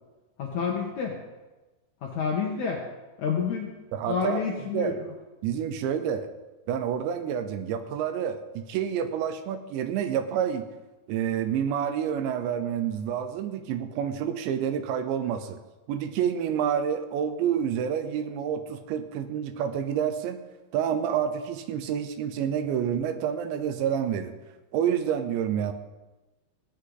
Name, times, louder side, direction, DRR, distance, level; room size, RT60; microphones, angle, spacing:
voice 1, 0.4-1.2 2.0-2.8 3.2-3.7 4.0-5.1, left 6 dB, 85° left, -1 dB, 1.6 m, -29 dB
voice 2, 3.9-4.4 4.7-4.9 5.4-6.3 6.7-10.7 11.1-15.6 15.9-20.4 20.7-24.3 24.7-25.7, right 8 dB, 80° right, 9 dB, 2.9 m, -28 dB
16.0 x 10.0 x 3.9 m, 1.1 s
omnidirectional pair, 5.3 m